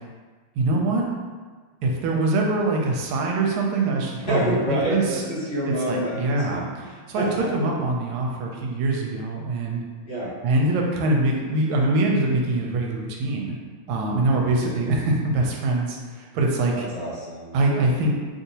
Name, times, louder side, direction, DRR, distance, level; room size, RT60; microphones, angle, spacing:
voice 1, 0.6-1.0 1.8-5.2 5.9-9.8 10.4-13.5 13.9-16.9 17.5-18.1, right 2 dB, 80° right, 0 dB, 1.4 m, -23 dB
voice 2, 4.3-6.4 6.8-7.5 10.0-10.3 14.5-14.8 16.7-17.6, equal, 50° left, -10 dB, 1.4 m, -28 dB
3.4 x 2.7 x 2.7 m, 1.5 s
omnidirectional pair, 2.3 m